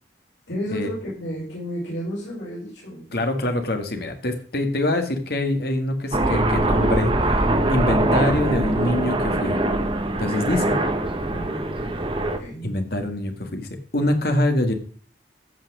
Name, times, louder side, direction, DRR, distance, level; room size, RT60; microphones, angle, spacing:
voice 1, 0.5-3.1 10.8-12.1 12.4-12.7, equal, 90° left, -6 dB, 5.4 m, -33 dB
voice 2, 3.1-7.4 7.7-9.6 10.2-10.8 12.6-14.7, left 1 dB, 60° left, 6 dB, 1.9 m, -24 dB
Aircraft, 6.1-12.4, right 1 dB, 30° right, 1.2 m, -22 dB
14.5 x 5.9 x 6.2 m, 0.43 s
head